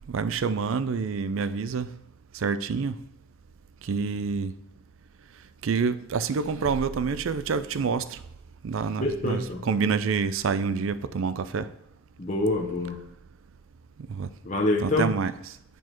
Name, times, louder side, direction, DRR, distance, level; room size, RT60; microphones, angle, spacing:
voice 1, 0.0-1.9 2.3-3.0 3.8-4.5 5.6-8.2 8.6-11.7 14.1-14.3 14.8-15.3, right 5 dB, 65° right, 0.4 m, -27 dB
voice 2, 9.0-9.6 12.2-13.0 14.4-15.1, left 2 dB, 35° left, 0.7 m, -26 dB
7.9 x 4.8 x 4.4 m
head